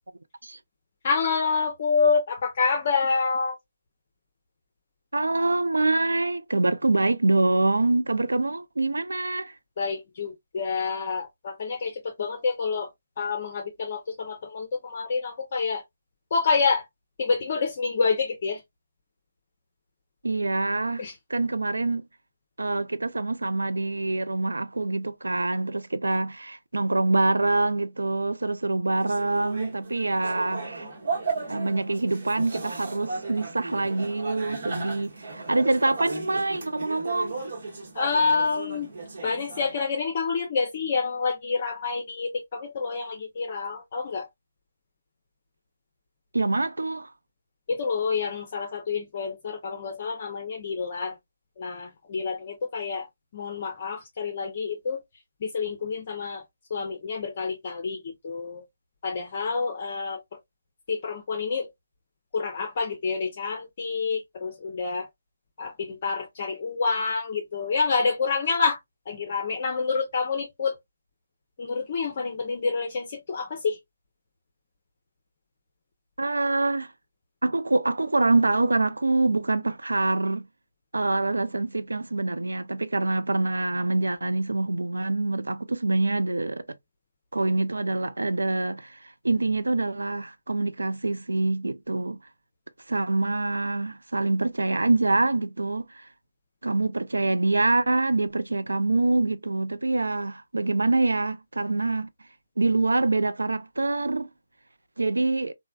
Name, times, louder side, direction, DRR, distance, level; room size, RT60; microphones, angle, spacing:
voice 1, 1.0-3.6 9.8-12.9 13.2-15.8 16.3-16.9 17.2-18.6 21.0-21.1 37.9-38.9 39.2-44.3 47.7-51.2 51.6-53.1 53.3-55.0 55.4-56.4 56.7-58.6 59.0-60.4 60.9-61.7 62.3-65.1 65.6-68.8 69.1-70.8 71.6-73.8, left 5 dB, 40° left, 0.6 m, -28 dB
voice 2, 5.1-9.5 20.2-21.0 21.3-22.0 22.6-30.9 31.5-37.4 46.3-47.1 76.2-76.9 77.4-80.5 80.9-86.8 87.3-92.2 92.9-96.1 96.6-102.1 102.6-104.3 105.0-105.5, right 2 dB, 80° right, 0.4 m, -25 dB
sound 1, 28.9-39.7, right 4 dB, 55° right, 1.0 m, -36 dB
3.2 x 2.1 x 2.2 m
figure-of-eight pair, 150°, 0 cm